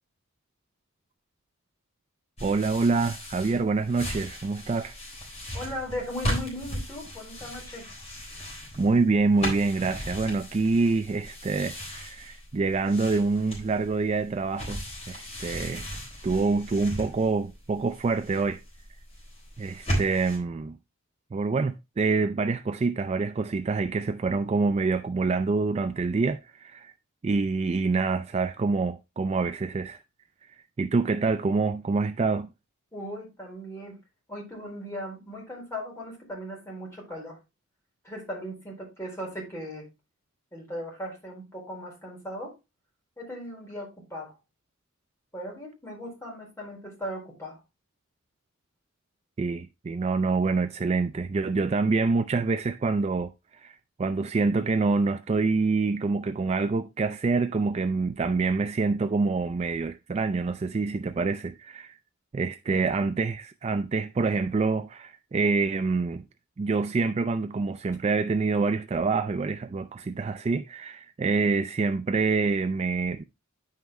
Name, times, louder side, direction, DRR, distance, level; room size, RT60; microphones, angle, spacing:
sound 1, 2.4-20.4, equal, 30° left, 3.7 m, -37 dB
voice 1, 2.4-5.0 8.8-15.9 16.2-18.6 19.6-20.8 21.3-26.9 27.2-30.0 30.8-32.5 49.4-62.0 62.3-66.2 66.6-73.2, right 4 dB, 30° right, 0.3 m, -26 dB
voice 2, 5.5-7.8 32.9-33.9 34.3-37.4 38.0-39.9 40.5-42.5 43.2-44.4 45.3-47.6 62.7-62.8, equal, 15° left, 4.4 m, -38 dB
9.8 x 5.7 x 3.1 m
head